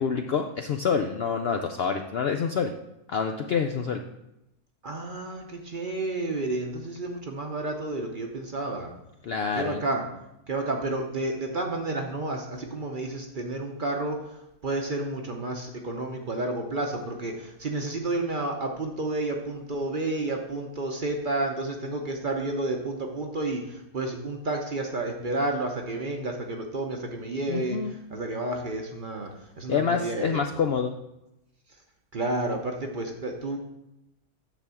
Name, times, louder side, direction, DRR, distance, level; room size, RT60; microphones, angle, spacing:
voice 1, 0.0-2.7 3.1-4.0 9.2-9.8 27.5-28.0 29.7-31.0, left 6 dB, 70° left, 5 dB, 0.5 m, -27 dB
voice 2, 4.8-8.9 9.5-10.1 10.5-14.4 14.6-29.3 29.6-30.4 32.1-33.6, right 2 dB, 40° right, 2 dB, 0.8 m, -31 dB
9.6 x 3.5 x 7.0 m, 0.88 s
omnidirectional pair, 1.6 m